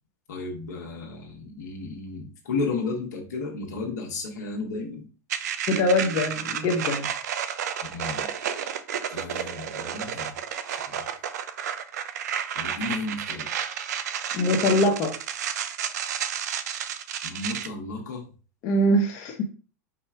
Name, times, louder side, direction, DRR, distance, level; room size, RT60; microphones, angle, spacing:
voice 1, 0.3-5.1 7.9-8.3 9.1-10.3 10.7-11.1 12.5-13.5 17.2-18.3, left 3 dB, 85° left, 1.4 m, -33 dB
sound 1, 5.3-17.7, right 8 dB, 80° right, 0.5 m, -31 dB
voice 2, 5.7-7.1 14.3-15.1 18.6-19.4, left 1 dB, 50° left, 1.0 m, -23 dB
4.8 x 2.4 x 4.5 m
hypercardioid pair, 100°, 9 cm